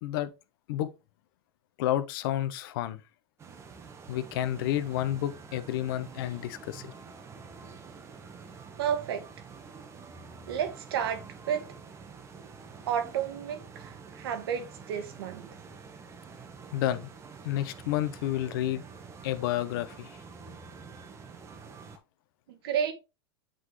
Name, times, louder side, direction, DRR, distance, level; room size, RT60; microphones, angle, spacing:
voice 1, 0.0-0.3 0.7-0.9 1.8-3.0 4.1-6.9 16.7-17.1 17.4-18.8 19.2-20.2, left 12 dB, 60° left, 0.7 m, -30 dB
sound 1, 3.4-22.0, right 5 dB, 20° right, 0.9 m, -47 dB
voice 2, 8.8-9.3 10.5-11.7 12.9-15.5 22.5-22.9, right 8 dB, 70° right, 1.3 m, -31 dB
7.8 x 3.8 x 3.1 m
hypercardioid pair, 120°, 13 cm